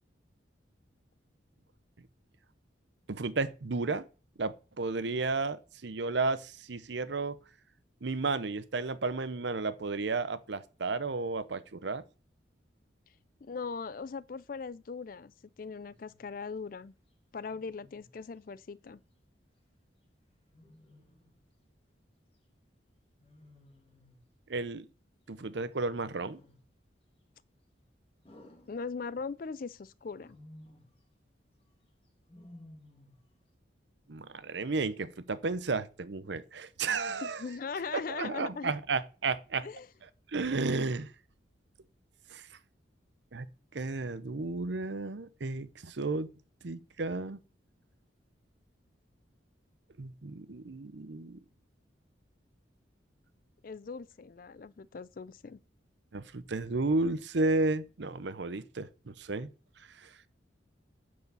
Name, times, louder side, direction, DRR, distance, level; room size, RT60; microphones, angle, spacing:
voice 1, 3.1-4.1 4.4-7.4 8.0-12.0 24.5-24.9 25.3-26.4 34.1-37.4 37.9-39.7 40.3-41.1 42.3-42.5 43.3-43.5 43.7-46.3 46.6-47.4 50.0-51.4 56.1-59.5 60.0-60.1, right 3 dB, 70° right, 0.7 m, -33 dB
voice 2, 13.4-15.3 15.6-16.9 17.3-19.0 28.7-30.4 37.2-38.7 39.6-39.9 53.6-55.6, left 5 dB, 45° left, 0.4 m, -40 dB
Wild animals, 15.9-16.2 17.5-18.2 20.5-21.4 23.2-24.3 25.8-26.7 28.2-29.4 30.1-31.0 32.3-33.3, left 1 dB, 30° left, 2.0 m, -56 dB
9.5 x 4.8 x 6.8 m
head